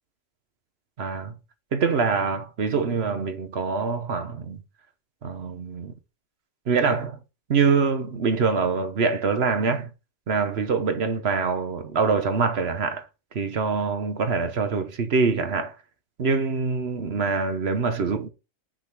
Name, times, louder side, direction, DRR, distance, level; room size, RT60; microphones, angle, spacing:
voice 1, 1.0-1.3 1.7-4.6 5.2-5.9 6.7-7.2 7.5-9.9 10.3-13.1 13.3-15.8 16.2-18.3, right 5 dB, 55° right, 1.1 m, -24 dB
6.4 x 4.0 x 5.9 m
omnidirectional pair, 1.4 m